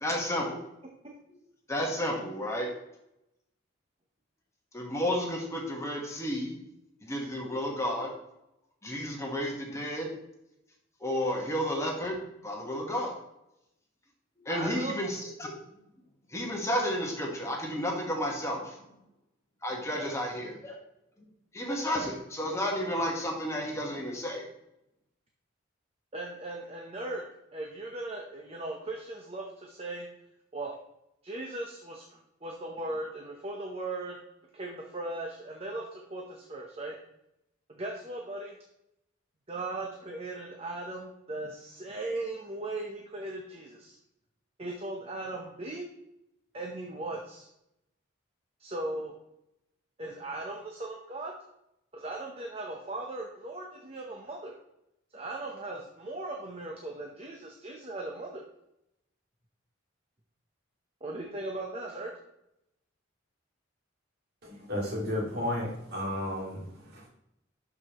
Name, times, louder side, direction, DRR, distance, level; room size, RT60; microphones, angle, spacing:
voice 1, 0.0-0.6 1.7-2.7 4.7-6.6 7.0-8.1 8.8-10.1 11.0-12.2 12.4-13.2 14.4-15.6 16.3-18.8 19.6-20.8 21.5-24.5, equal, 15° left, -1 dB, 1.3 m, -32 dB
voice 2, 14.5-15.0 19.9-20.1 26.1-27.2 27.5-30.1 30.5-30.8 31.2-34.2 34.5-37.0 37.7-38.6 39.5-44.0 44.6-45.9 46.5-47.5 48.6-49.1 50.0-51.3 51.9-54.5 55.1-58.4 61.0-62.1, right 2 dB, 30° right, 0 dB, 0.8 m, -38 dB
voice 3, 64.4-67.1, left 1 dB, 50° right, -2 dB, 2.2 m, -33 dB
12.0 x 5.0 x 3.0 m, 0.84 s
head